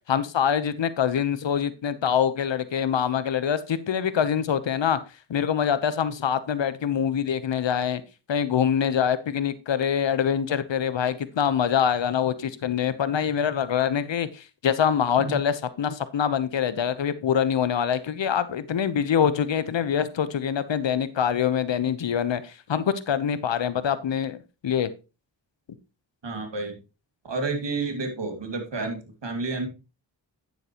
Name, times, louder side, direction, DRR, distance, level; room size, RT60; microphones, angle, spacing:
voice 1, 0.1-5.0 5.3-8.0 8.3-24.4 24.6-24.9, left 8 dB, 70° left, 1.0 m, -25 dB
voice 2, 26.2-26.8 27.2-29.7, right 3 dB, 65° right, 2.3 m, -30 dB
9.4 x 7.7 x 3.0 m
cardioid pair, 50°, 46 cm